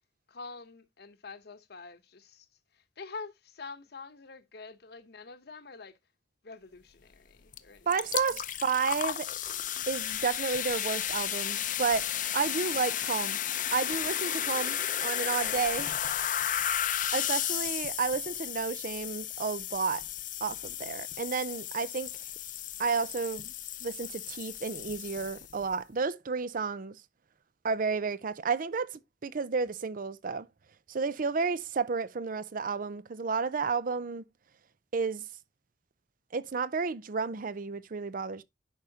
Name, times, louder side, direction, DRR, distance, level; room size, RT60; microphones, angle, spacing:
voice 1, 0.3-2.5 2.7-5.9 6.4-8.4, left 4 dB, 65° left, 0.9 m, -46 dB
sound 1, 7.5-7.6 7.9-25.6, left 11 dB, 50° left, 0.6 m, -33 dB
voice 2, 7.9-9.3 9.9-12.1 12.3-13.4 13.7-15.9 17.1-20.0 20.4-22.1 22.8-23.5 23.8-27.0 27.6-30.5 30.9-34.3 34.9-35.3 36.3-38.4, right 5 dB, 50° right, 0.5 m, -31 dB
11.0 x 4.9 x 2.8 m
head